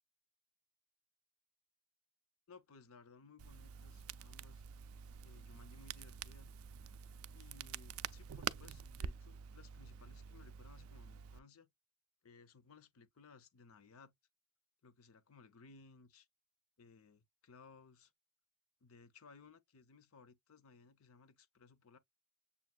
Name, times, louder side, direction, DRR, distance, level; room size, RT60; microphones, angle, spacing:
voice 1, 2.5-4.7 5.2-6.5 7.3-11.7 12.2-14.1 14.8-16.3 16.8-18.1 18.8-22.0, left 4 dB, 75° left, 0.6 m, -61 dB
Crackle, 3.4-11.4, right 8 dB, 70° right, 0.3 m, -47 dB
6.9 x 2.4 x 2.2 m
head